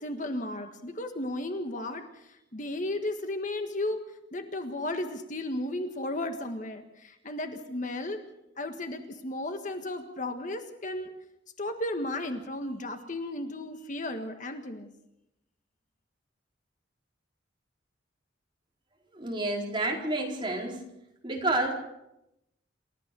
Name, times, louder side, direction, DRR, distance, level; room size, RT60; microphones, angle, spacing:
voice 1, 0.0-8.2 8.6-11.1 11.6-14.9, left 1 dB, 40° left, 6 dB, 1.6 m, -34 dB
voice 2, 19.1-20.8 21.2-21.7, right 2 dB, 25° right, -1 dB, 4.3 m, -29 dB
28.5 x 14.5 x 6.9 m, 0.87 s
head